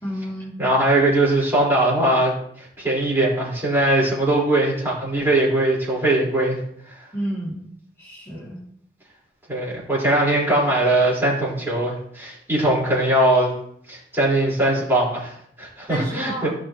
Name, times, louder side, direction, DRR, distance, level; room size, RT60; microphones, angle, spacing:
voice 1, 0.0-0.6 7.1-7.6 8.0-8.6 15.9-16.5, equal, 15° left, -8 dB, 2.6 m, -30 dB
voice 2, 0.6-2.3 2.6-6.6 6.9-7.0 9.5-13.5 13.9-16.5, right 1 dB, 15° right, -7 dB, 4.3 m, -20 dB
16.0 x 6.2 x 3.0 m, 0.67 s
head